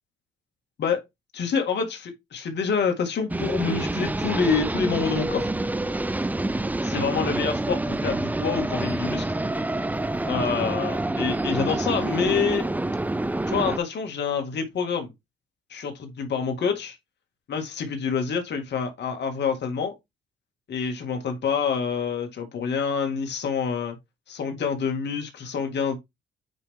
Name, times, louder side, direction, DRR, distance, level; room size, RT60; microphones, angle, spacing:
voice 1, 1.3-5.5 6.9-9.2 10.2-12.6 13.5-15.1 15.7-17.0 17.5-19.9 20.7-24.0 24.3-26.0, left 6 dB, 60° left, 2.1 m, -27 dB
sound 1, 3.3-13.8, right 2 dB, 10° right, 0.5 m, -27 dB
8.7 x 3.5 x 3.5 m
cardioid pair, 90°, 20 cm